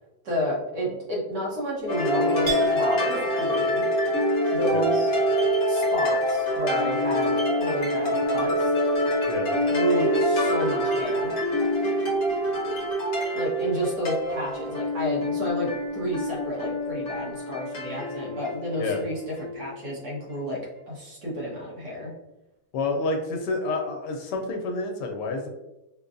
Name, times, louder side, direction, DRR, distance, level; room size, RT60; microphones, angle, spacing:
voice 1, 0.2-3.9 4.5-5.1 5.7-8.7 9.7-11.3 13.4-20.6 20.9-22.1, equal, 70° right, -4 dB, 1.8 m, -31 dB
sound 1, 1.9-19.7, equal, 55° left, 1.0 m, -26 dB
Chink clink, 2.5-10.1 10.5-11.2, left 3 dB, 25° right, 0.9 m, -30 dB
voice 2, 22.7-25.5, left 3 dB, 75° left, 3 dB, 1.2 m, -29 dB
5.3 x 2.2 x 2.5 m, 0.96 s
omnidirectional pair, 1.9 m